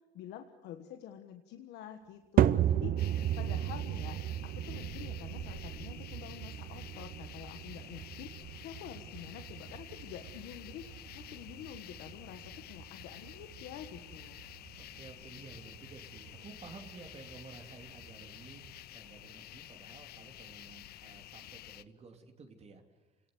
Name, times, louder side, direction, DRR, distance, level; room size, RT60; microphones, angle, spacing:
voice 1, 0.1-8.3 8.6-10.9 11.1-14.5, left 10 dB, 85° left, 6 dB, 1.5 m, -48 dB
sound 1, 2.4-18.8, right 11 dB, 55° right, 0.7 m, -36 dB
sound 2, 3.0-21.8, left 14 dB, 65° left, 0.8 m, -50 dB
voice 2, 14.8-18.6 18.9-23.0, right 4 dB, 40° right, 5 dB, 3.0 m, -53 dB
28.0 x 19.0 x 8.0 m, 1.2 s
cardioid pair, 110°, 17 cm